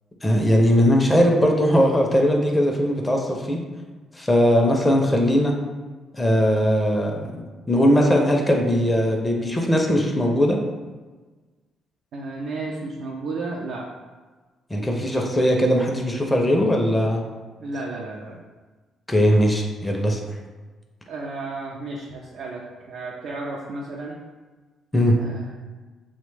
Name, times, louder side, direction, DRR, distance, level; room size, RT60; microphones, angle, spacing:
voice 1, 0.2-3.6 4.2-5.5 6.1-7.1 7.7-10.6 14.7-17.2 19.1-20.2 24.9-25.2, equal, 15° left, 0 dB, 0.4 m, -19 dB
voice 2, 12.1-13.9 17.6-18.4 21.1-24.2 25.2-25.6, right 3 dB, 75° right, -2 dB, 0.3 m, -33 dB
3.0 x 2.1 x 3.2 m, 1.3 s
cardioid pair, 90°, 0 cm